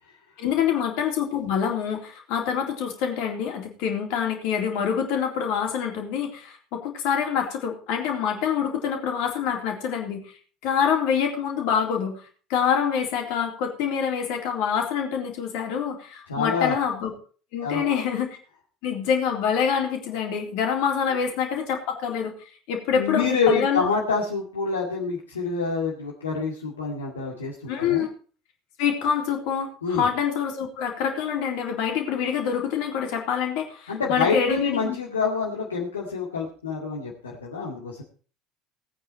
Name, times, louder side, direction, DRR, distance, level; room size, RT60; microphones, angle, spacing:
voice 1, 0.4-10.2 10.6-17.1 17.5-18.4 18.8-23.9 27.7-28.1 28.8-35.0, left 7 dB, 60° left, 2 dB, 3.7 m, -26 dB
voice 2, 16.3-16.8 17.6-18.0 22.9-28.0 29.8-30.1 33.9-38.0, left 4 dB, 80° left, -2 dB, 2.3 m, -27 dB
19.0 x 9.0 x 4.4 m, 0.41 s
figure-of-eight pair, 65°, 0 cm